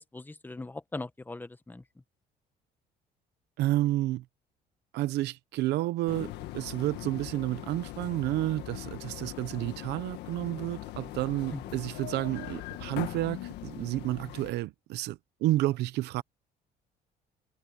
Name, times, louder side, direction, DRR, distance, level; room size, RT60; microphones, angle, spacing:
voice 1, 0.0-1.8 11.5-11.6, left 2 dB, 10° left, 1.1 m, -40 dB
voice 2, 3.6-4.2 4.9-16.2, right 16 dB, 85° right, 0.8 m, -30 dB
sound 1, 6.1-14.5, left 15 dB, 85° left, 1.7 m, -41 dB
cardioid pair, 110°, 17 cm